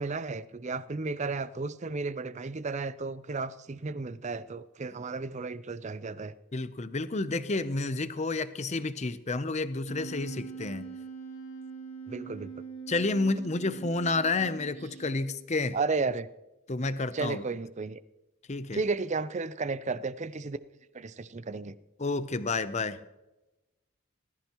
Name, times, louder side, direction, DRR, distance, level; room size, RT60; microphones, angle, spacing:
voice 1, 0.0-6.3 12.1-12.6 15.7-16.3 17.1-18.0 18.7-20.6 20.9-21.7, right 4 dB, 30° right, 0.5 m, -33 dB
voice 2, 6.5-10.9 12.9-15.8 16.7-17.4 18.5-18.8 22.0-23.0, left 3 dB, 30° left, 0.6 m, -30 dB
Wind instrument woodwind instrument, 9.9-15.5, right 5 dB, 70° left, 2.2 m, -43 dB
19.0 x 14.0 x 3.0 m
head